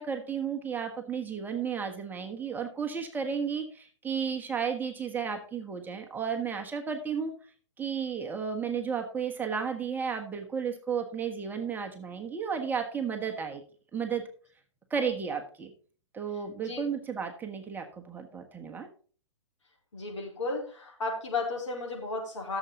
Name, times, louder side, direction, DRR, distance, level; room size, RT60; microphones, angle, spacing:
voice 1, 0.0-7.3 7.8-13.6 13.9-14.2 14.9-15.7 16.1-18.9, right 6 dB, 10° right, 3 dB, 1.4 m, -33 dB
voice 2, 19.9-22.6, left 3 dB, 75° left, 0 dB, 4.4 m, -34 dB
13.5 x 7.2 x 4.0 m, 0.41 s
hypercardioid pair, 120°, 16 cm